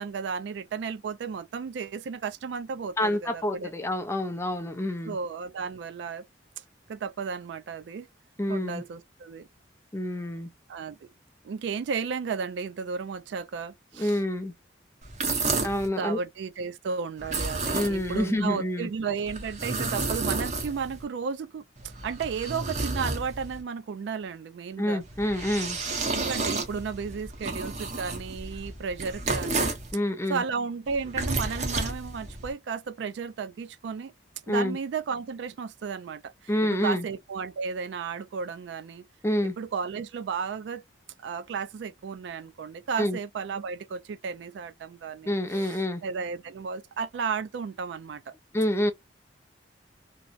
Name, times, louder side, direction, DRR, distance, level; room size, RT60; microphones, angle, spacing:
voice 1, 0.0-3.7 5.0-6.2 6.6-6.7 6.9-8.1 8.5-9.5 10.7-11.1 11.4-14.2 15.4-15.7 15.9-25.0 26.0-29.7 30.3-34.1 34.5-36.5 36.8-39.1 39.4-40.8 41.2-48.3, right 5 dB, 70° right, 0.3 m, -34 dB
voice 2, 3.0-5.2 8.4-8.8 9.9-10.5 14.0-14.5 15.6-16.2 17.7-18.9 24.8-25.8 29.9-30.4 34.5-34.8 36.5-37.1 39.2-39.6 43.0-43.2 45.3-46.0 48.5-48.9, left 1 dB, 15° left, 0.4 m, -27 dB
sound 1, 15.0-15.9 17.2-18.2 19.3-21.0 21.8-23.6 25.0-29.9 30.9-32.5, right 3 dB, 40° right, 0.7 m, -31 dB
2.7 x 2.1 x 2.3 m
head